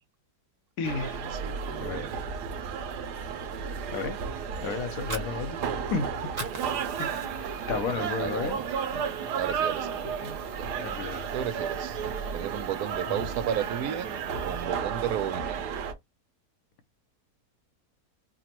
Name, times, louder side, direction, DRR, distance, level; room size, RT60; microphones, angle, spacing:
voice 1, 0.8-1.3 1.8-2.0 3.9-4.2 4.6-5.6 5.9-6.2 7.0-7.4 7.7-8.6 10.2-10.4 10.8-11.3 13.1-13.2, left 5 dB, 65° left, 1.0 m, -32 dB
sound 1, 0.8-15.9, right 7 dB, 90° right, 1.3 m, -33 dB
voice 2, 1.3-2.1 7.5-8.7 9.4-9.9 10.6-10.7 11.3-12.0 12.3-14.1 14.4-15.6, right 10 dB, 75° right, 1.0 m, -33 dB
Fire, 4.8-6.0 6.2-7.6 8.0-8.2 8.5-9.5, right 3 dB, 35° right, 0.7 m, -40 dB
sound 2, 6.7-14.6, left 3 dB, 80° left, 2.1 m, -56 dB
4.9 x 2.2 x 2.9 m
omnidirectional pair, 1.7 m